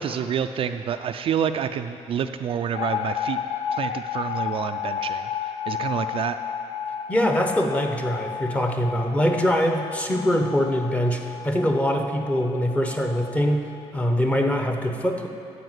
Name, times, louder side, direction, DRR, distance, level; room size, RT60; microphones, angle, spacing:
voice 1, 0.0-3.4 3.7-5.3 5.7-6.4, right 8 dB, 50° right, 8 dB, 0.4 m, -28 dB
sound 1, 2.7-13.9, left 8 dB, 50° left, 0.4 m, -32 dB
voice 2, 7.1-15.3, equal, 10° left, 3 dB, 0.9 m, -23 dB
12.5 x 4.9 x 8.0 m, 2.9 s
cardioid pair, 130°, 12 cm